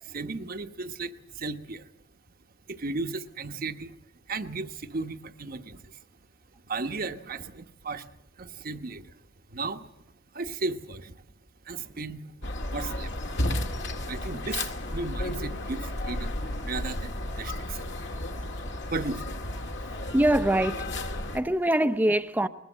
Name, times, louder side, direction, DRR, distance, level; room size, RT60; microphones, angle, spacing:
voice 1, 0.0-1.9 2.7-4.0 4.3-6.0 6.6-8.1 8.4-9.1 9.5-9.9 10.3-11.2 11.6-12.4 12.7-13.1 14.1-16.3 16.6-18.0 18.9-19.7, right 3 dB, 50° right, 1.1 m, -35 dB
sound 1, 12.4-21.4, left 1 dB, 65° left, 2.0 m, -33 dB
voice 2, 20.1-22.5, right 1 dB, 10° right, 0.7 m, -24 dB
21.0 x 20.5 x 7.4 m
head